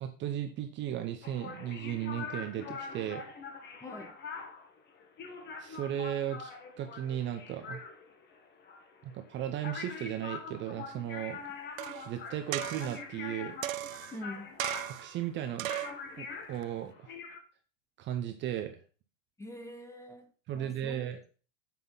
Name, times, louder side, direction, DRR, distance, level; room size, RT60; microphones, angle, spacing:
voice 1, 0.0-3.2 5.6-6.5 6.8-7.8 9.0-11.4 12.1-13.6 14.8-15.7 16.2-17.1 18.0-18.8 20.5-21.2, right 11 dB, 30° right, 7 dB, 0.8 m, -36 dB
sound 1, 1.2-17.4, left 5 dB, 25° left, 1.4 m, -44 dB
sound 2, 11.8-12.1 12.5-13.1 13.6-14.2 14.6-15.1 15.6-16.0 16.6-16.7, right 13 dB, 90° right, 0.7 m, -36 dB
voice 2, 14.1-14.5 19.4-20.3 20.5-21.0, left 1 dB, 5° left, 6 dB, 1.4 m, -44 dB
7.6 x 5.6 x 5.6 m, 0.38 s
supercardioid pair, 135°, 39 cm